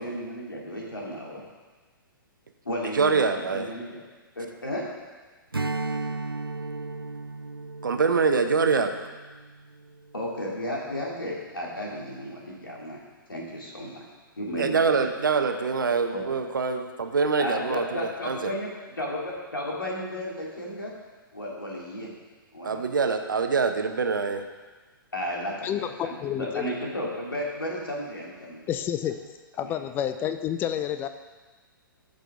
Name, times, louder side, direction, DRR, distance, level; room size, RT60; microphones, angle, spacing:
voice 1, 0.0-1.4 2.6-4.0 4.3-4.9 10.1-13.0 13.3-14.0 14.4-15.0 16.1-16.2 17.4-20.9 21.3-22.1 22.5-22.9 25.1-28.7 29.6-29.8, equal, 75° left, -3 dB, 2.6 m, -33 dB
voice 2, 2.9-3.7 7.8-8.9 14.6-18.5 22.6-24.4, right 5 dB, 65° right, 7 dB, 0.9 m, -24 dB
Strum, 5.5-10.3, right 3 dB, 85° right, 0.4 m, -35 dB
voice 3, 25.6-26.7 28.7-29.2 29.6-31.1, left 10 dB, 15° left, 9 dB, 0.5 m, -29 dB
14.0 x 6.5 x 3.7 m, 1.3 s
figure-of-eight pair, 115°, 12 cm